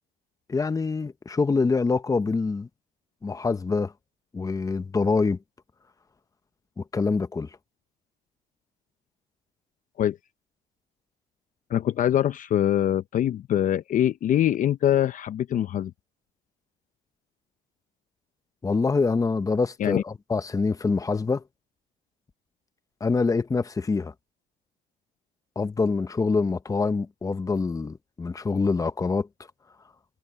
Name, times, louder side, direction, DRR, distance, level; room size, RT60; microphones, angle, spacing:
voice 1, 0.5-2.7 3.2-3.9 4.3-5.4 6.8-7.5 18.6-21.4 23.0-24.1 25.6-29.3, left 4 dB, 20° left, 1.1 m, -25 dB
voice 2, 11.7-15.9 19.8-20.0, left 11 dB, 50° left, 0.7 m, -23 dB
cardioid pair, 110°, 17 cm